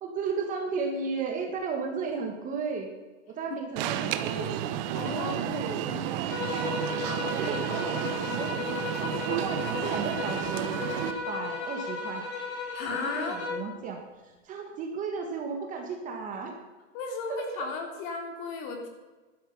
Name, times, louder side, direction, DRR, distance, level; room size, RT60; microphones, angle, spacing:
voice 1, 0.0-2.9 3.3-4.5 5.2-5.8 6.5-7.1 7.4-8.6 9.0-12.2 13.0-16.5 17.3-17.7, right 5 dB, 20° right, 3 dB, 1.6 m, -34 dB
Alarm, 3.8-11.1, right 11 dB, 35° right, 1.0 m, -31 dB
voice 2, 4.9-6.1 12.7-13.4 16.9-18.9, left 4 dB, 35° left, 3 dB, 3.1 m, -35 dB
sound 1, 6.3-13.7, left 4 dB, 60° left, 5.4 m, -35 dB
12.0 x 10.5 x 6.9 m, 1.2 s
hypercardioid pair, 155°, 38 cm